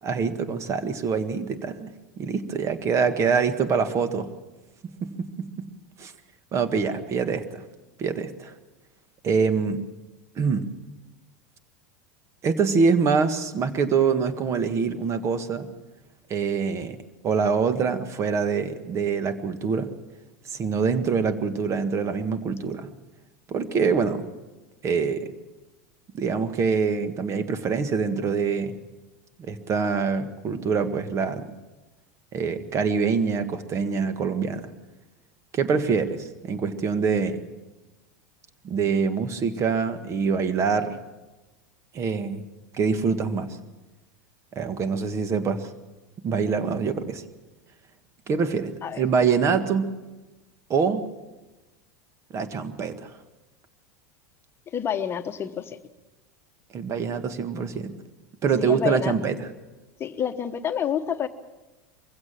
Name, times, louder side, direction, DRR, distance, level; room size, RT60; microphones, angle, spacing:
voice 1, 0.0-1.9 2.2-4.3 5.0-5.7 6.0-6.1 6.5-7.6 8.0-8.5 9.2-9.8 10.3-10.7 12.4-15.7 16.3-17.0 17.2-19.9 20.5-22.9 23.5-24.3 24.8-25.3 26.1-28.7 29.4-31.4 32.3-34.7 35.5-37.4 38.6-41.0 41.9-42.4 42.7-43.6 44.5-45.7 46.2-47.2 48.3-49.9 50.7-51.0 52.3-53.2 56.7-57.9 58.4-59.5, right 5 dB, 35° right, 11 dB, 1.7 m, -25 dB
voice 2, 54.7-55.8 58.6-59.1 60.0-61.3, left 8 dB, 30° left, 9 dB, 1.2 m, -28 dB
23.0 x 16.0 x 7.6 m, 1.1 s
hypercardioid pair, 90°, 8 cm